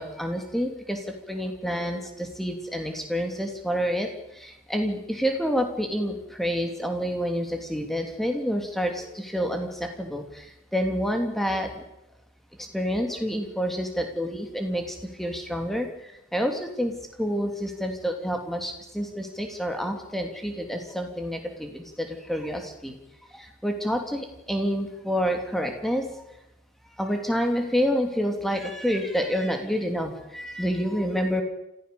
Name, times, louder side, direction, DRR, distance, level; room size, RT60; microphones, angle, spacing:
voice 1, 0.0-4.1 4.3-11.7 12.6-15.9 16.3-16.9 17.2-23.0 23.3-26.2 27.0-31.4, equal, ahead, 4 dB, 2.8 m, -28 dB
27.0 x 15.0 x 7.0 m, 0.88 s
head